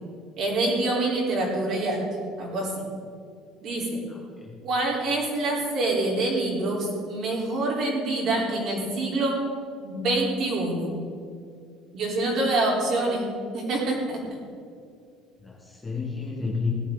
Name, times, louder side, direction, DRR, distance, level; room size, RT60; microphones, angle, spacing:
voice 1, 0.4-2.0 2.4-2.8 3.6-4.0 4.6-9.4 9.8-10.9 11.9-13.3 13.5-14.2, right 2 dB, 45° right, -3 dB, 4.3 m, -26 dB
voice 2, 4.1-4.5 15.4-16.7, left 4 dB, 10° left, -2 dB, 1.6 m, -31 dB
18.0 x 12.0 x 4.1 m, 2.3 s
cardioid pair, 170°, 0 cm